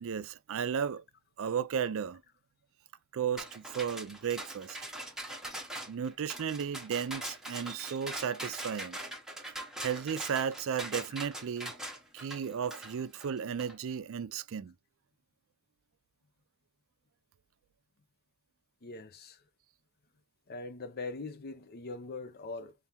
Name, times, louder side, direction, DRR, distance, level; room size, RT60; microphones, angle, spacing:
voice 1, 0.0-1.0 1.4-2.2 3.1-4.8 5.9-9.0 9.5-11.7 12.1-14.7, right 7 dB, 65° right, 0.4 m, -34 dB
sound 1, 3.4-13.7, right 1 dB, ahead, 1.0 m, -42 dB
voice 2, 18.8-19.4 20.5-22.7, left 3 dB, 45° left, 0.6 m, -41 dB
5.5 x 2.0 x 2.9 m
head